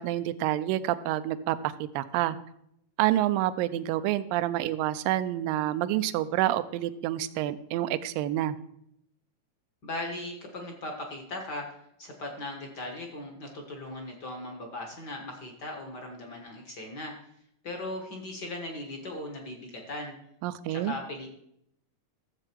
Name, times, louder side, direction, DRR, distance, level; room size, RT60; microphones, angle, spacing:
voice 1, 0.0-2.4 3.0-8.6 20.4-20.9, right 13 dB, 85° right, 14 dB, 2.3 m, -28 dB
voice 2, 9.8-11.7 12.0-17.1 17.6-20.1 20.7-21.3, left 2 dB, 45° left, 2 dB, 1.4 m, -38 dB
14.0 x 7.6 x 4.6 m, 0.74 s
omnidirectional pair, 3.9 m